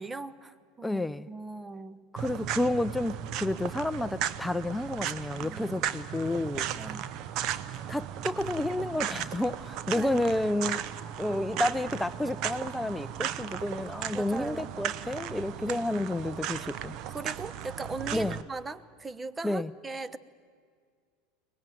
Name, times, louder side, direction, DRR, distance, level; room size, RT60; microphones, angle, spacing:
voice 1, 0.0-2.0 5.1-5.6 6.7-7.1 9.9-10.1 14.1-14.7 15.6-15.8 17.1-20.2, right 3 dB, 20° right, 18 dB, 0.9 m, -39 dB
voice 2, 0.8-1.3 2.1-6.7 7.9-10.8 11.2-16.9 18.1-18.4 19.4-19.7, left 1 dB, 5° left, 14 dB, 0.5 m, -30 dB
sound 1, 2.2-18.4, right 10 dB, 55° right, 0.9 m, -36 dB
23.0 x 19.5 x 9.1 m, 2.1 s
hypercardioid pair, 90°, 0 cm